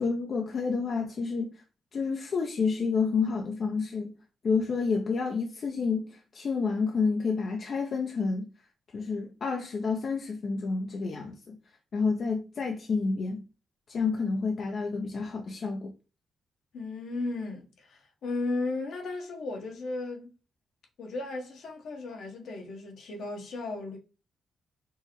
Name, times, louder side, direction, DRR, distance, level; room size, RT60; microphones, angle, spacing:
voice 1, 0.0-1.6 1.9-4.1 4.4-8.5 8.9-11.6 11.9-13.4 13.9-15.9, left 4 dB, 60° left, 0.5 m, -29 dB
voice 2, 16.7-20.3 21.0-24.0, left 2 dB, 75° left, 1.0 m, -35 dB
4.5 x 2.0 x 3.0 m
cardioid pair, 65°, 0 cm